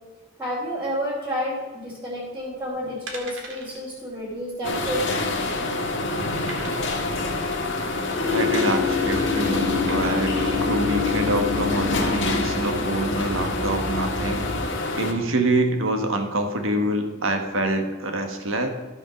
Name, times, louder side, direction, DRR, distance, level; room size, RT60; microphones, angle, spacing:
voice 1, 0.4-5.3, equal, 10° right, -10 dB, 3.0 m, -30 dB
sound 1, 2.4-2.6 3.1-3.8 4.1-4.3 4.6-4.7 5.2-5.7 6.5-7.2 8.5-8.9 9.9-10.6 11.2-11.3, right 2 dB, 70° right, 1.9 m, -40 dB
sound 2, 4.6-15.1, left 2 dB, 60° left, 1.6 m, -27 dB
sound 3, 8.2-14.8, left 4 dB, 80° left, 2.7 m, -27 dB
voice 2, 8.3-14.5 14.9-18.7, right 2 dB, 90° right, 5 dB, 1.3 m, -26 dB
13.5 x 5.1 x 6.2 m, 1.2 s
head